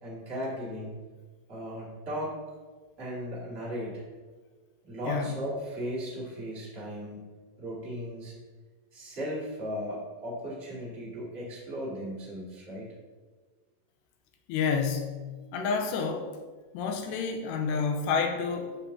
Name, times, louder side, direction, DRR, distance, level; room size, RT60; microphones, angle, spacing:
voice 1, 0.0-0.9 1.5-2.4 3.0-4.0 4.8-8.3 8.9-12.8, equal, 40° right, -6 dB, 0.9 m, -36 dB
voice 2, 14.5-15.2 15.5-16.3 16.7-18.8, left 5 dB, 85° left, 4 dB, 2.7 m, -29 dB
12.0 x 7.2 x 2.8 m, 1.4 s
omnidirectional pair, 5.2 m